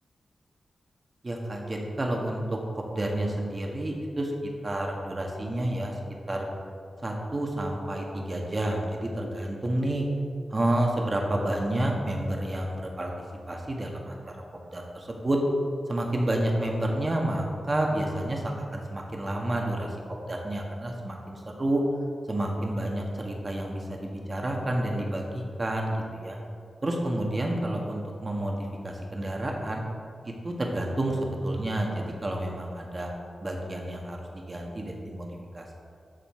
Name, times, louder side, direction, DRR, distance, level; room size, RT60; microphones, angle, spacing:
voice 1, 1.2-4.3 4.6-5.9 6.3-6.5 7.0-10.1 10.5-13.1 13.5-14.3 14.7-15.4 15.9-20.0 20.2-21.8 22.3-26.4 26.8-28.6 28.8-29.8 30.2-33.1 33.4-35.7, right 1 dB, 30° right, 0 dB, 1.5 m, -30 dB
13.0 x 4.4 x 4.4 m, 2.3 s
wide cardioid pair, 90°, 0 cm